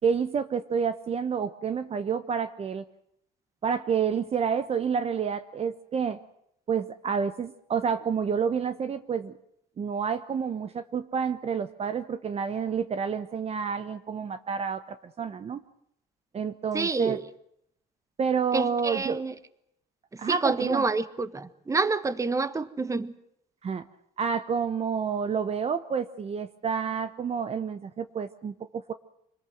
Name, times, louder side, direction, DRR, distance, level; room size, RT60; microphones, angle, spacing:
voice 1, 0.0-2.8 3.6-6.2 6.7-9.3 9.8-15.6 16.3-17.2 18.2-19.2 20.2-20.9 23.6-23.8 24.2-28.9, right 6 dB, 35° right, 11 dB, 1.0 m, -29 dB
voice 2, 16.7-17.2 18.5-19.3 20.3-23.1, right 3 dB, 20° right, 14 dB, 1.3 m, -28 dB
26.0 x 20.0 x 7.8 m, 0.74 s
cardioid pair, 110°, 17 cm